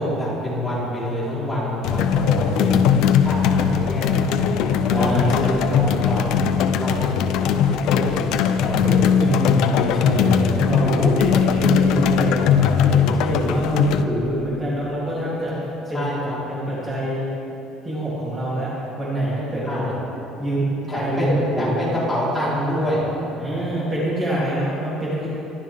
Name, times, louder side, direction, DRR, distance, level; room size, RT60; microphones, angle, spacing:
voice 1, 0.0-2.7 3.2-9.3 15.9-16.4 19.7-19.9 20.9-23.1, left 1 dB, 5° left, -9 dB, 4.4 m, -27 dB
sound 1, 1.8-14.0, left 8 dB, 60° left, 0.6 m, -20 dB
voice 2, 2.1-2.8 4.9-6.1 8.6-15.6 15.9-16.0 16.5-17.2 17.8-18.7 19.0-19.9 20.4-21.8 23.4-25.3, equal, 20° right, -8 dB, 3.3 m, -25 dB
25.0 x 13.0 x 3.7 m, 2.9 s
cardioid pair, 170°, 0 cm